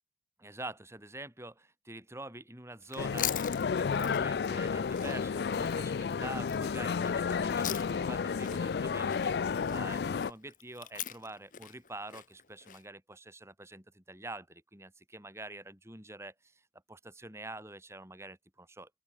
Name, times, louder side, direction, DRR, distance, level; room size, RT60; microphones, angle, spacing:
voice 1, 0.4-16.6 16.9-18.9, right 2 dB, 15° right, 6.4 m, -46 dB
Chewing mastication, 2.8-8.2 8.4-12.8, left 12 dB, 50° left, 1.3 m, -42 dB
sound 1, 3.0-10.3, left 6 dB, 65° left, 0.4 m, -32 dB
open air
head